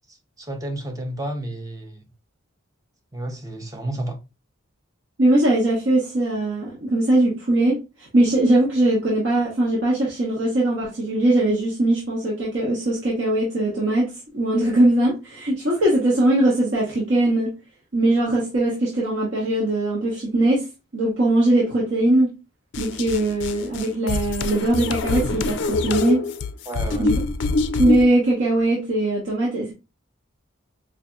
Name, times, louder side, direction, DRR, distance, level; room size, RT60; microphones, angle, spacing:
voice 1, 0.1-2.0 3.1-4.2 26.7-27.1, right 1 dB, 15° right, 0.6 m, -31 dB
voice 2, 5.2-17.6 17.9-20.6 20.9-22.3 22.8-26.2 27.0-27.1 27.7-29.7, right 1 dB, 60° right, 1.1 m, -20 dB
sound 1, 22.7-28.1, left 3 dB, 55° left, 0.4 m, -25 dB
4.9 x 2.7 x 2.3 m
head